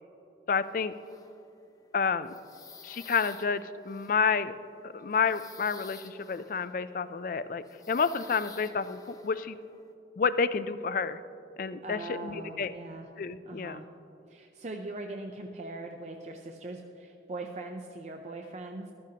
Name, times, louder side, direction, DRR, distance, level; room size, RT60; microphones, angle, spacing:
voice 1, 0.5-0.9 1.9-2.3 2.8-4.5 4.8-9.6 10.2-11.2 11.6-12.7 13.2-13.8, left 5 dB, 50° left, 14 dB, 0.4 m, -30 dB
sound 1, 0.6-1.7 1.9-7.1 7.6-9.9, left 5 dB, 20° left, 0.7 m, -52 dB
voice 2, 11.8-13.1 13.4-13.9 14.3-18.9, right 2 dB, 40° right, 3 dB, 0.5 m, -41 dB
14.0 x 12.5 x 2.8 m, 2.8 s
head